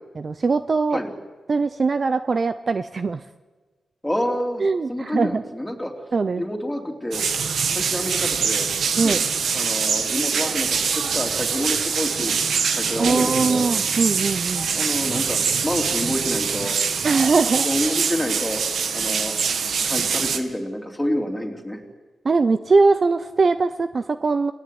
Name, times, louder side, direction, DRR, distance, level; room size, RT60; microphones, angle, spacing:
voice 1, 0.2-1.0 1.5-3.2 4.6-5.4 6.1-6.4 9.0-9.2 13.0-14.7 17.0-17.7 22.2-24.5, right 4 dB, 40° right, 11 dB, 0.8 m, -21 dB
voice 2, 4.0-4.6 4.9-5.9 6.4-7.2 7.7-8.7 9.0-9.2 9.5-12.3 12.8-13.7 14.7-16.8 17.6-18.6 18.9-19.3 19.8-21.8, left 1 dB, 5° left, 2 dB, 3.9 m, -28 dB
sound 1, 7.1-20.4, right 6 dB, 70° right, 2.1 m, -24 dB
29.0 x 18.0 x 9.6 m, 1.3 s
wide cardioid pair, 125°, 0 cm